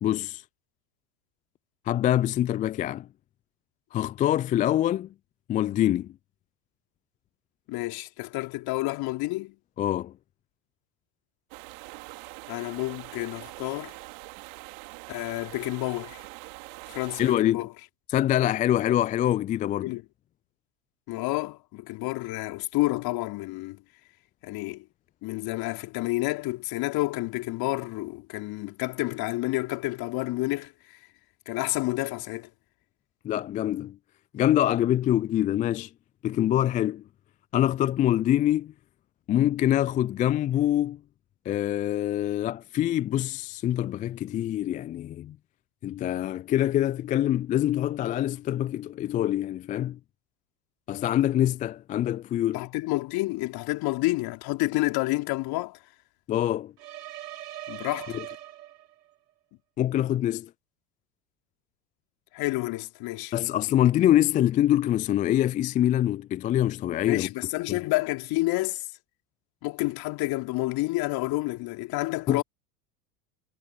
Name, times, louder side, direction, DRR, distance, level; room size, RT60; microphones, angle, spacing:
voice 1, 0.0-0.4 1.9-3.1 3.9-5.1 5.5-6.1 9.8-10.1 17.2-17.7 18.1-19.9 33.2-34.0 34.3-35.9 36.2-37.0 37.5-38.7 39.3-41.0 41.5-45.4 45.8-50.0 50.9-52.7 56.3-56.7 58.1-58.2 59.8-60.5 63.3-67.3 67.7-67.8 72.3-72.4, left 12 dB, 20° left, 0.4 m, -25 dB
voice 2, 7.7-9.6 12.5-14.0 15.1-16.3 16.9-17.7 19.8-20.0 21.1-23.8 24.4-24.8 25.2-30.7 31.5-32.5 52.5-55.8 57.7-58.2 62.3-63.3 67.1-68.9 69.6-72.4, left 20 dB, 50° left, 4.1 m, -29 dB
sound 1, 11.5-17.4, right 33 dB, 55° right, 2.9 m, -43 dB
sound 2, 56.8-59.1, right 13 dB, 75° right, 7.0 m, -41 dB
hypercardioid pair, 85°, 47 cm